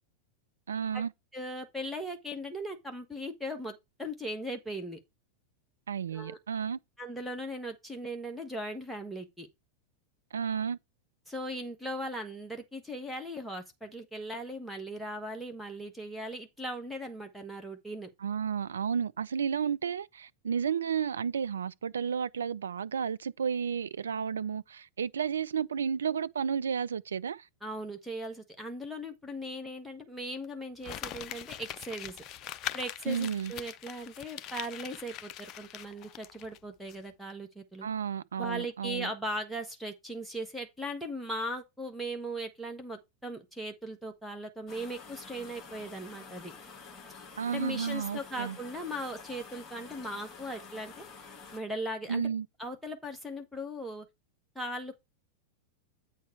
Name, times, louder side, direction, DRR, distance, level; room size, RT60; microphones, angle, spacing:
voice 1, 0.7-1.1 5.9-6.8 10.3-10.8 18.2-27.4 33.1-33.5 37.8-39.1 47.4-48.6 52.1-52.5, right 7 dB, 70° right, 0.4 m, -32 dB
voice 2, 1.3-5.0 6.1-6.4 7.0-9.5 11.3-18.1 27.6-32.2 32.7-37.9 38.4-46.5 47.5-51.1 51.5-52.3 52.6-54.0 54.5-55.0, equal, ahead, 1.3 m, -38 dB
Crumpling crinkling, 30.8-36.6 36.9-37.0, left 11 dB, 35° left, 0.4 m, -42 dB
sound 1, 44.7-51.6, left 5 dB, 20° left, 2.1 m, -49 dB
8.2 x 4.6 x 4.5 m
figure-of-eight pair, 90°, 0 cm